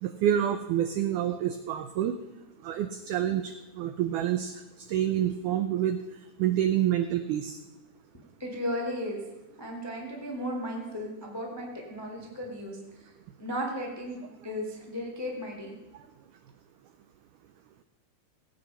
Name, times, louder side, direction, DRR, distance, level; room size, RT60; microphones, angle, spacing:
voice 1, 0.0-2.1 2.6-6.0 6.4-7.6, right 11 dB, 85° right, 9 dB, 1.8 m, -28 dB
voice 2, 8.4-9.2 9.6-12.8 13.4-14.2 14.4-15.7, equal, 25° left, -1 dB, 0.5 m, -35 dB
17.0 x 8.3 x 5.6 m, 1.1 s
omnidirectional pair, 4.2 m